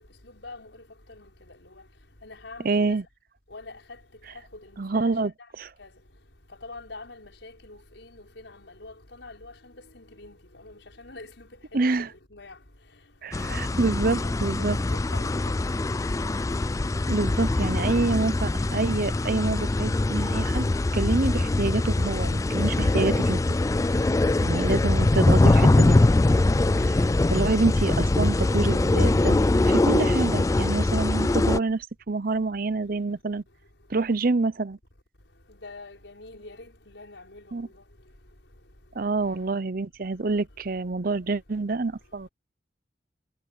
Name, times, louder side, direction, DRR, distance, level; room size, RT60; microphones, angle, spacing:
voice 1, 0.2-1.8 2.2-3.0 3.5-4.0 4.3-5.0 5.8-6.0 6.6-12.6 13.5-13.9 14.2-14.3 14.6-15.9 23.9-24.2 26.8-27.1 31.0-31.2 35.5-37.8, left 2 dB, 85° left, 5.8 m, -45 dB
voice 2, 2.6-3.0 4.8-5.3 5.6-5.7 11.7-12.1 13.2-14.8 17.1-23.4 24.4-26.0 26.9-27.0 27.3-29.4 29.6-33.4 33.9-34.8 37.5-37.7 39.0-42.3, right 3 dB, 55° right, 0.7 m, -27 dB
sound 1, 13.3-31.6, left 2 dB, 20° left, 0.3 m, -22 dB
head